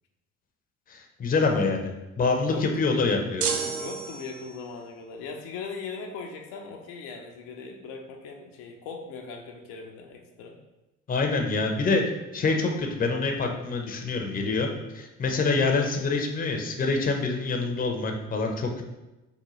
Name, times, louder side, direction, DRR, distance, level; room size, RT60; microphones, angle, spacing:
voice 1, 0.9-3.4 11.1-14.7 14.9-18.8, left 3 dB, 25° left, 3 dB, 0.6 m, -26 dB
voice 2, 2.5-3.3 3.8-10.6, left 4 dB, 80° left, 2 dB, 0.5 m, -39 dB
sound 1, 3.4-4.7, right 6 dB, 65° right, 0.5 m, -31 dB
3.7 x 2.1 x 3.0 m, 1.0 s
hypercardioid pair, 60°, 31 cm